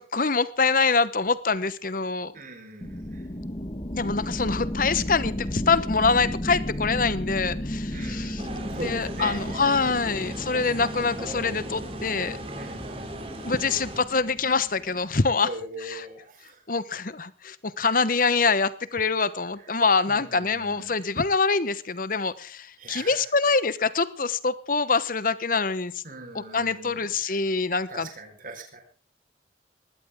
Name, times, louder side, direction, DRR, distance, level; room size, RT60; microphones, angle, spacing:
voice 1, 0.0-2.3 3.9-8.4 8.7-12.4 13.4-15.5 15.8-16.0 16.7-26.0 26.3-28.1, left 4 dB, 50° left, 15 dB, 1.1 m, -25 dB
voice 2, 2.3-3.3 7.9-9.7 12.6-12.9 15.4-16.6 20.1-20.9 22.8-23.3 26.0-27.4 27.9-28.8, right 2 dB, 50° right, 4 dB, 4.6 m, -41 dB
sound 1, 2.8-15.1, equal, 30° left, 1.6 m, -34 dB
sound 2, 8.4-14.0, right 1 dB, 30° right, 3.3 m, -38 dB
20.5 x 16.0 x 3.7 m, 0.37 s
head